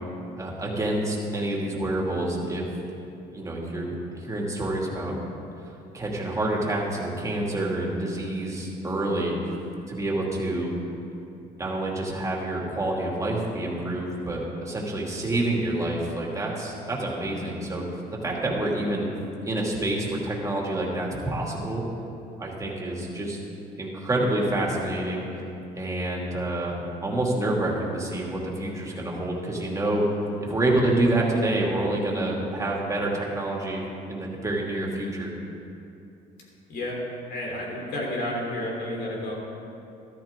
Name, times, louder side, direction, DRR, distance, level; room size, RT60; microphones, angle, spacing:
voice 1, 0.4-2.7 3.3-5.1 5.6-9.6 9.9-10.7 11.6-17.8 18.1-19.1 19.4-21.8 22.4-23.4 23.8-25.4 25.7-26.7 27.0-35.3, right 1 dB, 20° right, -2 dB, 2.5 m, -27 dB
voice 2, 36.7-37.0 37.3-39.3, left 1 dB, 70° left, -2 dB, 3.4 m, -31 dB
13.5 x 13.0 x 3.7 m, 2.8 s
cardioid pair, 110°, 17 cm